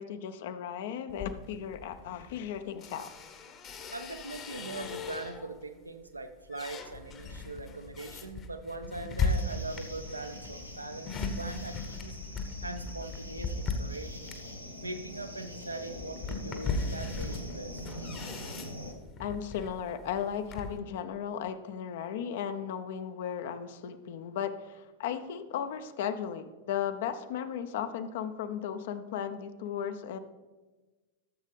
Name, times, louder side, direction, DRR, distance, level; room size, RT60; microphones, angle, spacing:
voice 1, 0.0-3.1 19.2-30.2, left 8 dB, 55° left, 10 dB, 0.6 m, -36 dB
sound 1, 1.1-5.6 6.1-20.8, left 3 dB, 30° left, 1.0 m, -38 dB
voice 2, 3.9-12.2 12.6-14.2 14.8-17.9, right 2 dB, 80° right, 9 dB, 0.7 m, -41 dB
sound 2, 9.3-18.9, equal, 90° left, 1.1 m, -44 dB
14.0 x 7.3 x 3.3 m, 1.2 s
figure-of-eight pair, 90°, 0 cm